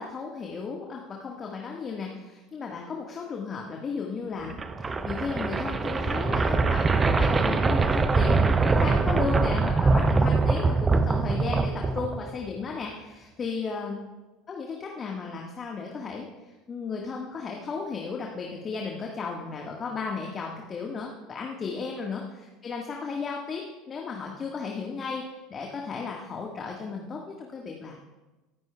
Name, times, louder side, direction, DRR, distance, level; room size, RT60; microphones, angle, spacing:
voice 1, 0.0-14.0 14.5-16.3 16.7-22.2 22.6-23.6 23.9-25.2 25.5-28.0, left 5 dB, 30° left, 0 dB, 1.6 m, -34 dB
sound 1, 4.4-12.5, right 4 dB, 20° right, 0.8 m, -23 dB
22.5 x 11.5 x 2.3 m, 1.1 s
figure-of-eight pair, 70°, 0 cm